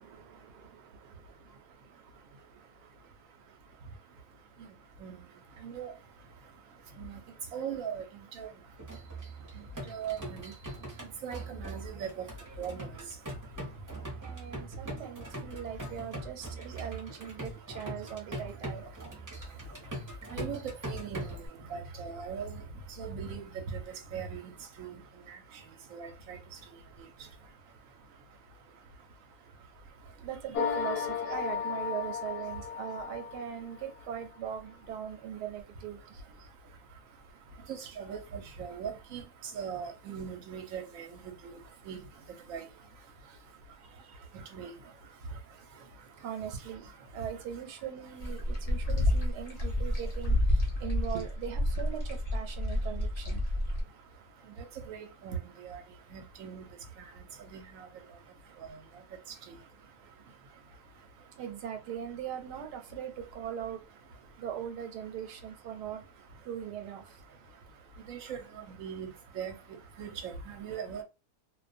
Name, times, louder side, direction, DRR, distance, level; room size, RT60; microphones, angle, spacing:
voice 1, 0.0-1.5 14.2-18.8 30.2-36.2 46.2-46.9 47.1-53.4 61.4-63.8 64.4-66.0 66.4-67.0, right 9 dB, 90° right, 1.1 m, -40 dB
voice 2, 7.5-8.0 8.4-8.5 9.9-10.5 11.2-12.2 12.6-12.9 20.3-20.6 20.9-21.4 21.7-22.5 23.0-23.5 23.7-23.8 24.1-24.5 24.8-24.9 25.9-26.4 38.0-39.2 39.6-41.1 41.4-41.5 41.9-42.0 42.5-42.6 44.5-44.7 54.9-55.0 55.2-55.4 55.6-55.8 56.1-56.6 57.5-57.6 68.1-68.4 68.7-69.1 69.4-69.5 70.0-71.0, right 7 dB, 65° right, 0.9 m, -39 dB
sound 1, 8.8-21.5, right 1 dB, 15° right, 0.7 m, -41 dB
sound 2, 30.5-33.9, left 7 dB, 90° left, 1.2 m, -34 dB
sound 3, 48.2-53.8, left 1 dB, 65° left, 0.3 m, -29 dB
2.4 x 2.2 x 2.5 m
omnidirectional pair, 1.7 m